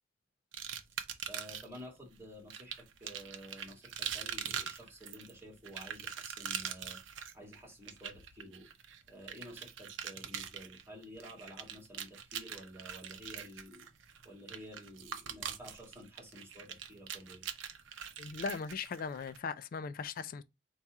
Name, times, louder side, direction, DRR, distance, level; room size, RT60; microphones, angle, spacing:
sound 1, 0.5-1.8 2.5-19.4, right 8 dB, 80° right, 0.6 m, -43 dB
voice 1, 0.9-8.7 9.1-13.9 14.2-17.4, equal, 10° right, 1.6 m, -51 dB
voice 2, 18.2-20.4, left 5 dB, 50° left, 0.3 m, -39 dB
4.1 x 2.4 x 4.6 m
head